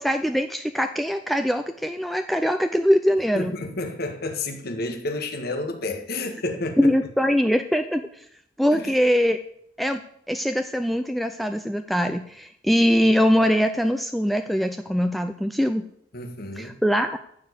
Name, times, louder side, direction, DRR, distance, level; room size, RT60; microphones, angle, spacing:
voice 1, 0.0-3.5 6.8-8.2 8.6-9.4 9.8-10.0 10.3-15.8 16.6-17.2, equal, ahead, 7 dB, 0.5 m, -22 dB
voice 2, 3.3-6.9 8.7-8.9 16.1-16.8, left 2 dB, 55° left, 5 dB, 1.7 m, -30 dB
14.0 x 4.9 x 8.2 m, 0.68 s
head